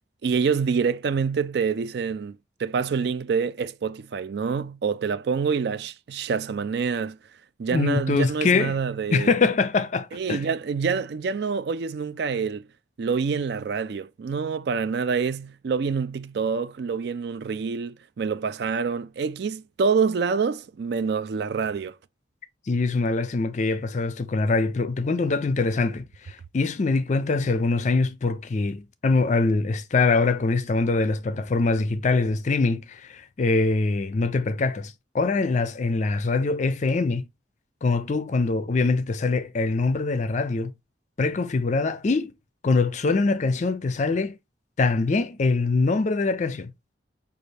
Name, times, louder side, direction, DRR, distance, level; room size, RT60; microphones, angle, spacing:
voice 1, 0.2-7.2 7.6-9.4 10.1-12.7 13.0-21.9, right 5 dB, 60° right, 0.4 m, -26 dB
voice 2, 7.7-8.8 9.1-10.4 22.7-37.3 37.8-40.7 41.2-42.3 42.6-44.4 44.8-46.7, left 3 dB, 40° left, 0.4 m, -23 dB
5.1 x 2.4 x 3.2 m
head